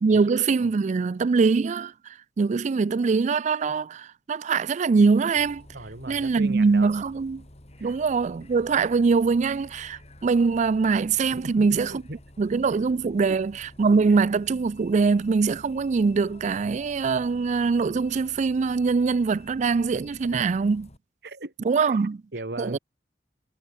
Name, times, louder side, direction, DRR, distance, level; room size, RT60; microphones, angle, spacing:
voice 1, 0.0-5.6 6.1-7.4 7.8-12.0 12.4-20.9 21.6-22.2 22.6-22.8, right 4 dB, 40° right, 0.4 m, -23 dB
Bus, 5.3-21.0, left 1 dB, 35° left, 3.3 m, -50 dB
voice 2, 5.7-6.9 7.8-8.0 11.3-12.2 13.2-13.4 21.2-21.5 21.9-22.8, right 2 dB, 65° right, 2.4 m, -38 dB
head